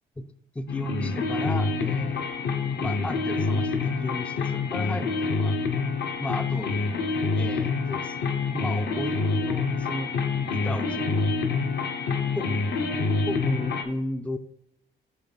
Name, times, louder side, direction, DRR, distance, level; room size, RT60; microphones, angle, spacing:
voice 1, 0.2-2.3 2.8-5.6 6.2-6.8 7.3-8.2 8.5-10.1 10.5-11.3 12.3-12.6 13.2-14.4, left 1 dB, 5° left, 12 dB, 0.3 m, -34 dB
sound 1, 0.7-13.8, left 4 dB, 60° left, 0.8 m, -27 dB
7.9 x 3.9 x 3.9 m, 0.75 s
cardioid pair, 90°, 20 cm